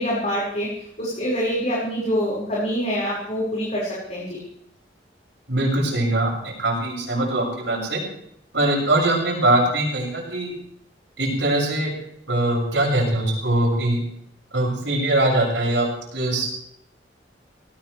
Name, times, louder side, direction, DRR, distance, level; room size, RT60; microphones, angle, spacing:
voice 1, 0.0-4.4, equal, 40° left, -6 dB, 5.4 m, -25 dB
voice 2, 5.5-8.0 8.5-10.5 11.2-11.9 12.3-14.0 14.5-15.9 16.1-16.5, right 1 dB, 75° right, -2 dB, 7.2 m, -22 dB
19.0 x 18.5 x 3.4 m, 0.73 s
head